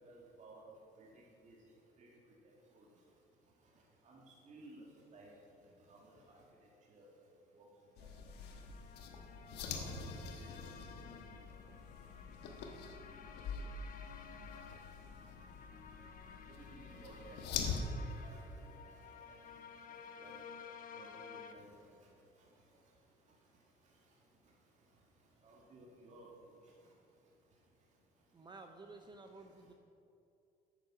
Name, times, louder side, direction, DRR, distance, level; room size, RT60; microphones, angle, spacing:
voice 1, 0.0-1.6 2.0-2.9 4.0-4.9 5.1-5.3 5.9-6.4 6.9-7.1 7.6-7.7 8.0-8.1 9.7-10.6 11.3-11.6 14.5-14.6 16.5-20.5 20.9-22.0 22.4-22.5 25.4-26.7, right 2 dB, 45° right, -4 dB, 2.0 m, -58 dB
sound 1, 8.0-17.8, left 6 dB, 90° left, 1.2 m, -45 dB
sound 2, 8.2-21.5, left 6 dB, 55° left, 1.0 m, -54 dB
voice 2, 28.3-29.7, right 3 dB, 25° right, 5 dB, 0.6 m, -53 dB
8.9 x 8.2 x 5.9 m, 2.7 s
cardioid pair, 110°, 17 cm